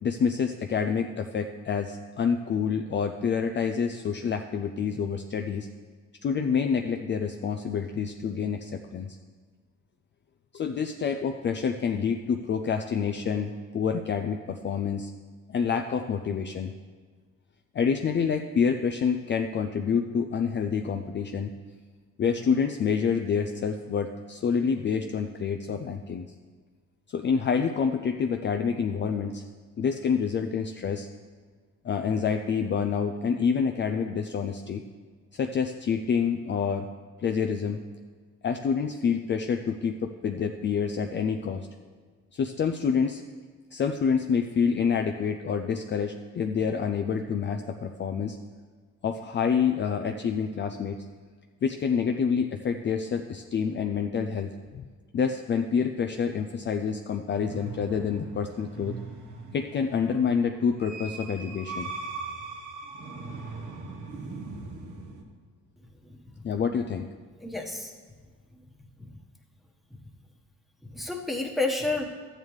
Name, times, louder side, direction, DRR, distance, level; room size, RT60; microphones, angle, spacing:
voice 1, 0.0-5.7 6.2-9.2 10.5-15.1 15.5-16.7 17.7-21.5 22.2-26.3 27.1-29.4 29.8-31.1 31.8-34.8 35.3-36.9 37.2-37.8 38.4-41.7 42.3-43.2 43.7-48.4 49.0-51.1 51.6-54.8 55.1-59.0 59.5-61.9 66.4-67.1, left 6 dB, 40° left, 5 dB, 0.4 m, -27 dB
sound 1, 57.3-65.2, right 4 dB, 80° right, 1.3 m, -40 dB
voice 2, 66.0-66.4 67.4-67.9 69.0-69.1 69.9-70.0 70.8-72.0, left 2 dB, ahead, -2 dB, 1.3 m, -31 dB
12.5 x 8.8 x 3.2 m, 1.5 s
cardioid pair, 90°, 30 cm